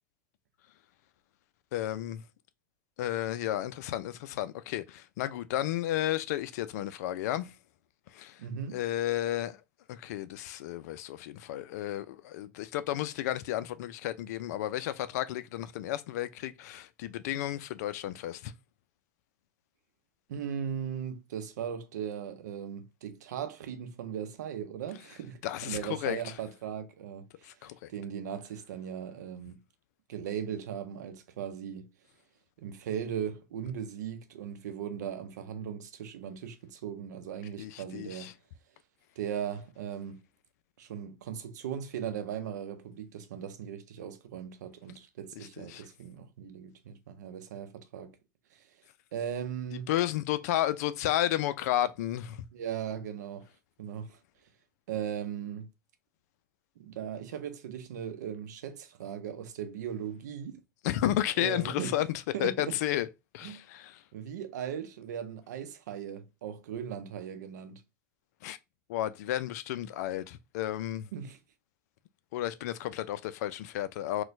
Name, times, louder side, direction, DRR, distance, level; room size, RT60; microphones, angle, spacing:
voice 1, 1.7-2.2 3.0-7.5 8.1-8.4 8.7-9.6 9.9-18.5 25.4-26.2 27.4-27.9 37.6-38.3 45.6-45.8 49.9-52.4 60.8-62.1 62.4-63.1 63.3-63.9 68.4-68.6 68.9-71.1 72.3-74.2, left 13 dB, 65° left, 0.4 m, -32 dB
voice 2, 8.4-8.8 20.3-27.6 27.9-29.6 30.1-31.9 32.6-38.3 39.2-40.2 40.8-48.2 48.5-48.6 49.1-49.9 52.5-53.5 53.8-54.2 54.9-55.7 56.8-60.6 61.4-62.0 62.3-62.8 63.4-63.6 64.1-67.8 71.1-71.4, right 8 dB, 75° right, 0.6 m, -38 dB
4.2 x 2.2 x 2.6 m
hypercardioid pair, 100°, 9 cm